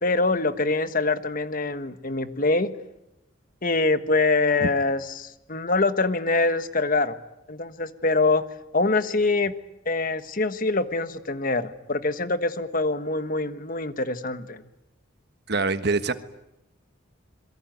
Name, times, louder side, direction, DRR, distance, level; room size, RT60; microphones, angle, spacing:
voice 1, 0.0-2.7 3.6-7.2 7.5-8.4 8.7-9.5 9.8-14.6, left 3 dB, 45° left, 11 dB, 1.4 m, -24 dB
voice 2, 15.5-16.1, right 3 dB, 55° right, 11 dB, 1.4 m, -24 dB
27.0 x 22.5 x 9.3 m, 0.89 s
head